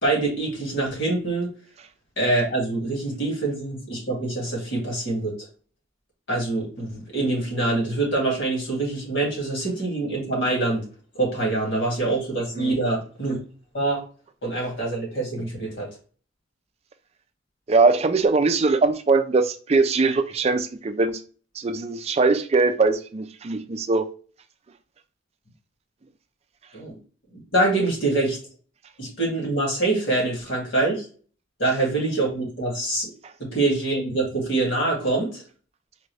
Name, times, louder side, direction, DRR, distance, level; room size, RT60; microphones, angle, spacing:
voice 1, 0.0-1.5 2.2-5.3 6.3-10.9 11.1-13.4 13.7-14.0 14.4-15.9 26.7-27.0 27.5-28.4 29.0-31.0 31.6-33.1 33.4-35.4, right 2 dB, 65° left, 2.1 m, -25 dB
voice 2, 17.7-21.2 21.6-24.1, right 3 dB, 30° right, 0.4 m, -21 dB
4.5 x 2.5 x 3.2 m
head